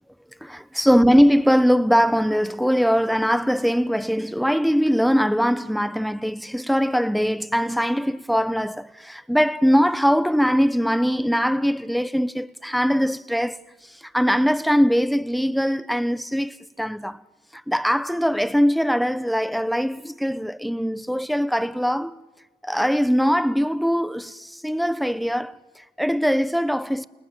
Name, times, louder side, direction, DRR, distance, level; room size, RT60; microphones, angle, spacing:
voice 1, 0.4-17.2 17.5-22.2 22.6-27.1, equal, ahead, 1.1 m, -21 dB
29.5 x 19.5 x 7.6 m
cardioid pair, 50°, 18 cm